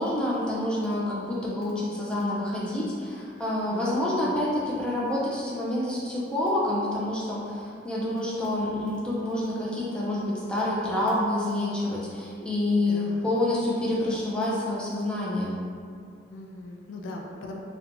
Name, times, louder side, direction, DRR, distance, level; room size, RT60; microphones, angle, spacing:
voice 1, 0.0-15.6, left 1 dB, 5° left, -7 dB, 0.4 m, -28 dB
voice 2, 3.7-4.4 12.8-13.3 16.3-17.6, left 1 dB, 80° left, 1 dB, 0.3 m, -40 dB
2.8 x 2.2 x 2.5 m, 2.3 s
head